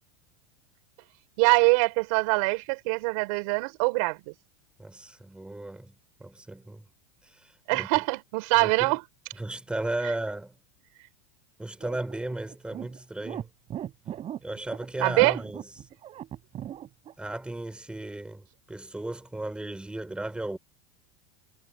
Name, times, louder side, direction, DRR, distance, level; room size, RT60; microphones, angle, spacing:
voice 1, 1.4-4.2 7.7-9.0 15.0-15.4, right 28 dB, 65° right, 4.4 m, -23 dB
voice 2, 4.8-6.9 7.2-8.0 8.6-8.9 9.3-10.6 11.6-13.5 14.4-15.7 17.2-20.6, right 2 dB, 5° right, 4.1 m, -35 dB
sound 1, 11.8-17.1, right 11 dB, 35° right, 7.2 m, -38 dB
supercardioid pair, 130°, 19 cm